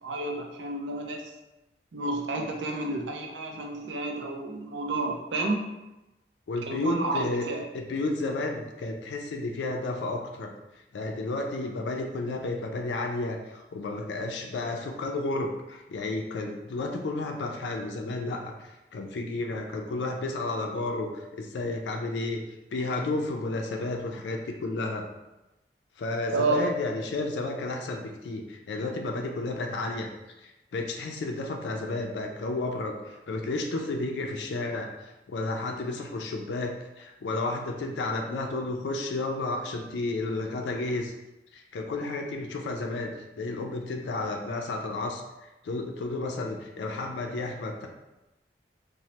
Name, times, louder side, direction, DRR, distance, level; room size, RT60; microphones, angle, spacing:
voice 1, 0.0-1.3 1.9-5.7 6.7-7.6 26.3-26.6, right 2 dB, 90° right, 1 dB, 0.5 m, -30 dB
voice 2, 6.5-7.5 7.7-10.5 10.9-22.4 22.7-25.1 26.0-30.1 30.7-41.1 41.5-47.9, left 2 dB, 80° left, 3 dB, 0.4 m, -32 dB
3.0 x 2.0 x 2.8 m, 0.98 s
head